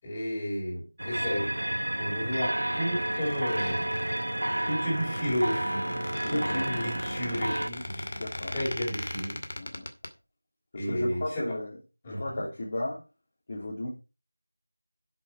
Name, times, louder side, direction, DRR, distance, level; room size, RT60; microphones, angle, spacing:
voice 1, 0.0-1.6 1.9-3.9 4.6-8.1 8.5-9.4 10.7-11.6 12.0-12.4, equal, 15° left, 5.0 m, -32 dB
sound 1, 1.0-7.7, right 1 dB, 75° right, 0.9 m, -31 dB
Squeak, 2.9-10.1, left 1 dB, 55° left, 2.3 m, -39 dB
voice 2, 6.2-6.7 8.1-8.5 9.6-9.9 10.7-11.8 12.0-13.0 13.5-13.9, left 1 dB, 30° left, 3.0 m, -35 dB
11.5 x 7.7 x 4.9 m
figure-of-eight pair, 170°, 0 cm